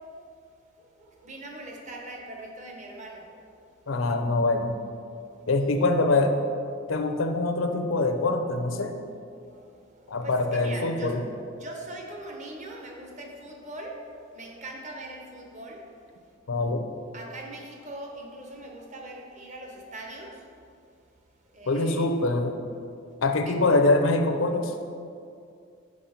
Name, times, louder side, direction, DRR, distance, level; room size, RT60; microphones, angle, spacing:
voice 1, 0.8-3.4 4.0-4.1 5.4-5.5 9.5-9.7 9.9-11.1 11.6-15.9 17.1-20.4 21.5-22.1 23.5-23.6, right 1 dB, 40° right, 0 dB, 1.0 m, -41 dB
voice 2, 3.9-4.8 5.5-6.3 6.9-8.9 10.1-11.2 16.5-16.8 21.7-22.5 23.2-24.7, left 2 dB, 90° left, 5 dB, 0.6 m, -24 dB
5.4 x 4.9 x 5.7 m, 2.4 s
head